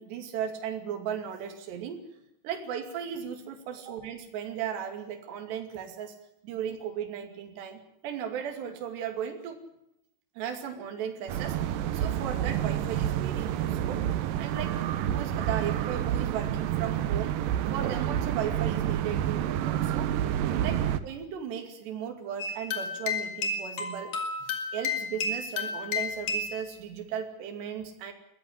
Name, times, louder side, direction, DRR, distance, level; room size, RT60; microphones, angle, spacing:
voice 1, 0.0-2.0 2.4-6.1 6.4-9.6 10.4-14.0 14.4-14.8 15.1-17.4 17.7-20.1 20.6-24.1 24.7-28.1, right 8 dB, 65° right, 4 dB, 4.5 m, -36 dB
sound 1, 11.3-21.0, right 11 dB, 90° right, 1.9 m, -29 dB
sound 2, 22.4-26.6, left 4 dB, 45° left, 3.3 m, -31 dB
21.5 x 14.5 x 9.9 m, 0.79 s
omnidirectional pair, 5.5 m